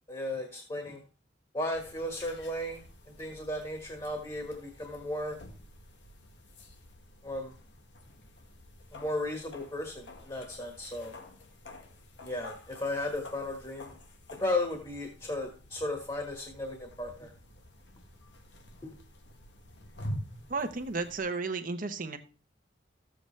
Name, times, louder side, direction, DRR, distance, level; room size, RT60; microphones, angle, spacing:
voice 1, 0.1-1.0 1.5-2.8 3.2-5.4 7.2-7.6 8.9-11.1 12.2-13.9 14.3-17.3 18.8-18.9, left 1 dB, 25° left, 3 dB, 1.5 m, -35 dB
sound 1, 1.7-21.2, equal, 75° left, 1.7 m, -48 dB
voice 2, 20.5-22.2, right 3 dB, 50° right, 7 dB, 1.0 m, -33 dB
13.5 x 7.9 x 3.2 m, 0.36 s
head